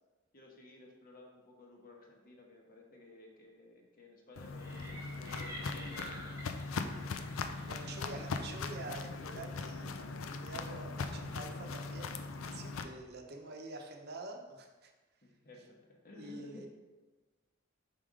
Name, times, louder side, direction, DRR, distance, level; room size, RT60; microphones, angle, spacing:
voice 1, 0.3-6.3 12.6-12.9 15.2-16.6, left 2 dB, 45° left, 0 dB, 1.0 m, -55 dB
Walk footsteps, 4.4-12.8, left 4 dB, 80° left, 0.4 m, -40 dB
sound 1, 4.6-9.4, equal, 15° right, 0.9 m, -50 dB
voice 2, 7.7-14.9 16.1-16.7, right 2 dB, 55° right, 3 dB, 0.8 m, -47 dB
5.3 x 5.0 x 3.7 m, 1.2 s
head